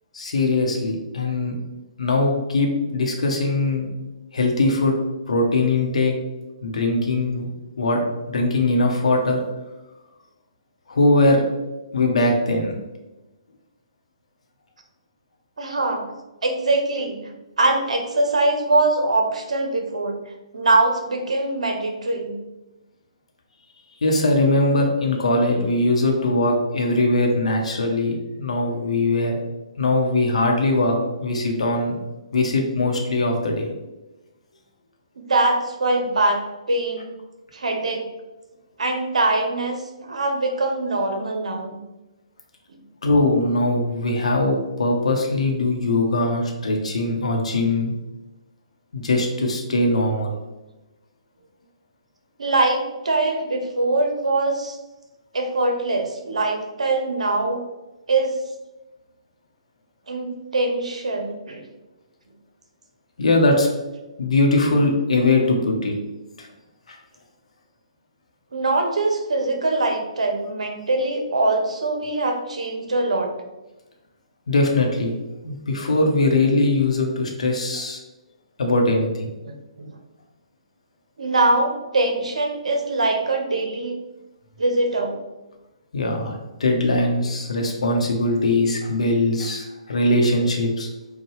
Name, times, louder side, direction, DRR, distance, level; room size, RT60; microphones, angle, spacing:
voice 1, 0.1-1.5 2.0-3.9 4.3-5.0 5.3-6.2 6.6-7.5 7.8-8.0 8.3-9.4 10.9-11.4 11.9-12.8 24.0-29.4 29.8-32.0 32.3-33.7 43.0-47.9 48.9-50.3 63.2-63.7 64.2-65.9 66.4-66.5 74.5-75.1 75.4-78.0 78.6-79.3 85.9-90.9, left 2 dB, 70° left, 1 dB, 0.8 m, -21 dB
voice 2, 15.6-16.0 16.4-17.2 17.6-20.2 20.5-22.3 35.2-37.1 37.5-38.0 38.8-41.8 52.4-54.8 55.3-57.6 58.1-58.4 60.1-61.7 68.5-73.3 79.4-80.0 81.2-84.0 84.6-85.2, right 2 dB, 75° right, 4 dB, 0.7 m, -22 dB
4.7 x 2.2 x 3.1 m, 1.1 s
hypercardioid pair, 135°, 4 cm